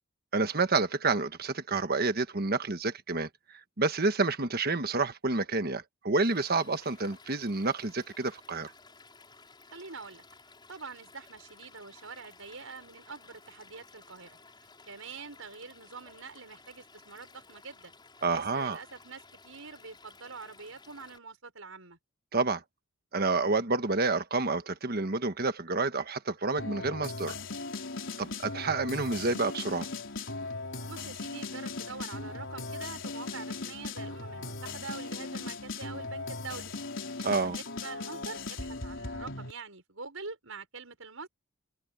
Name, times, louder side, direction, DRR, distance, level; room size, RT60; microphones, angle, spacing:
voice 1, 0.3-3.3 3.8-8.7 18.2-18.8 22.3-22.6 23.1-27.3 28.2-29.9 37.2-37.6, right 3 dB, 45° right, 1.3 m, -29 dB
Stream / Liquid, 6.2-21.2, left 4 dB, 20° left, 6.4 m, -56 dB
voice 2, 9.7-10.2 10.7-14.4 14.9-17.9 18.3-22.0 28.1-28.4 30.9-36.7 37.2-41.3, right 4 dB, 75° right, 5.4 m, -45 dB
sound 1, 26.6-39.5, left 3 dB, 60° left, 4.4 m, -38 dB
head